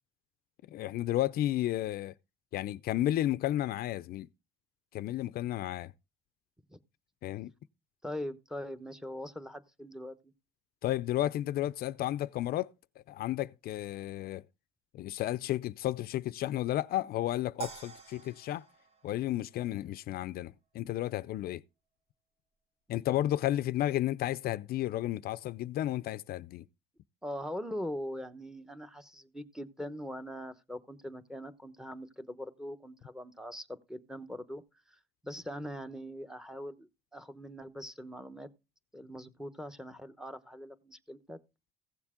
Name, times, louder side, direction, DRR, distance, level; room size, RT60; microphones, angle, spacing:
voice 1, 0.7-2.1 2.5-4.3 4.9-5.9 7.2-7.5 10.8-12.7 13.0-14.4 14.9-18.6 19.0-21.6 22.9-26.7, left 14 dB, 65° left, 0.4 m, -32 dB
voice 2, 8.0-10.3 27.2-34.6 34.9-38.5 38.9-41.4, equal, 5° right, 0.9 m, -42 dB
sound 1, 17.6-20.0, right 7 dB, 35° right, 1.8 m, -46 dB
15.5 x 7.2 x 3.6 m
cardioid pair, 110°, 17 cm